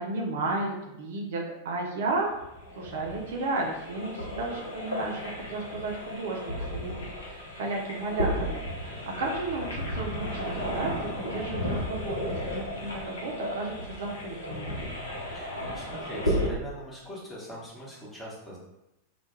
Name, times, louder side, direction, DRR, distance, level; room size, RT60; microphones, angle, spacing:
voice 1, 0.0-2.3 2.8-14.7, right 2 dB, 55° right, 0 dB, 0.4 m, -33 dB
sound 1, 2.1-16.5, equal, 75° left, 0.6 m, -34 dB
voice 2, 15.3-18.6, equal, 10° left, -7 dB, 0.9 m, -42 dB
2.2 x 2.1 x 2.9 m, 0.88 s
figure-of-eight pair, 90°, 0 cm